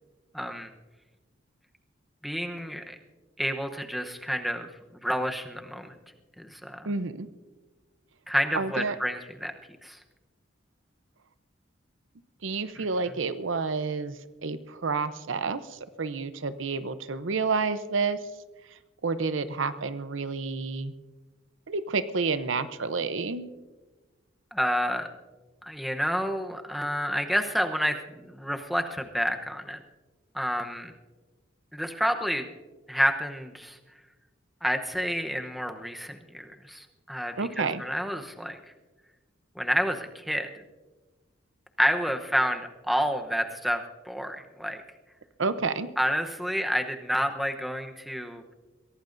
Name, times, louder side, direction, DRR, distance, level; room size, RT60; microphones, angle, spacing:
voice 1, 0.3-0.7 2.2-2.9 3.4-4.7 5.0-5.9 6.4-6.9 8.3-9.5 9.8-10.0 12.8-12.9 24.5-25.1 25.6-29.8 30.3-30.9 31.7-32.4 32.9-33.8 34.6-38.6 39.6-40.5 41.8-44.8 46.0-48.5, equal, ahead, 5 dB, 0.9 m, -29 dB
voice 2, 6.8-7.3 8.5-9.0 12.4-14.2 14.4-18.2 19.0-20.9 21.7-23.5 37.4-37.8 45.4-45.9, right 4 dB, 80° right, 12 dB, 0.7 m, -29 dB
22.5 x 17.0 x 2.6 m, 1.2 s
head